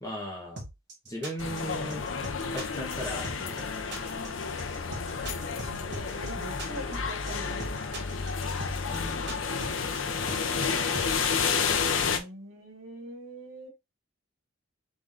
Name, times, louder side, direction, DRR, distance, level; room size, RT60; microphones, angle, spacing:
voice 1, 0.0-0.6 1.0-2.0 2.5-4.0 8.9-9.6 10.2-10.9, equal, 15° left, 0 dB, 1.5 m, -39 dB
sound 1, 0.6-11.1, right 1 dB, 55° right, 1.6 m, -40 dB
sound 2, 1.4-12.2, left 5 dB, 75° left, 0.7 m, -31 dB
voice 2, 5.6-7.9 12.0-13.7, right 1 dB, 80° right, 2 dB, 1.8 m, -43 dB
3.8 x 3.8 x 3.5 m, 0.23 s
head